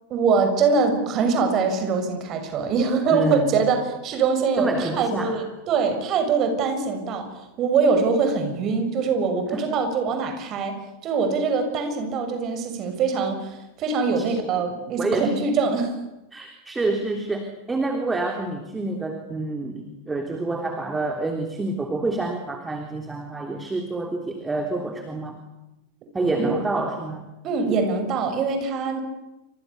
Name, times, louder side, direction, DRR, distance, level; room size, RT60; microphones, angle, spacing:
voice 1, 0.1-10.8 11.0-15.9 26.3-26.6 27.4-29.0, right 5 dB, 35° right, 7 dB, 6.5 m, -23 dB
voice 2, 3.1-3.5 4.6-5.4 9.5-9.6 14.2-14.3 15.0-15.3 16.3-25.4 26.1-27.3 27.7-27.8, right 2 dB, 10° right, 4 dB, 3.4 m, -27 dB
29.0 x 26.5 x 7.0 m, 0.98 s
figure-of-eight pair, 90°, 0 cm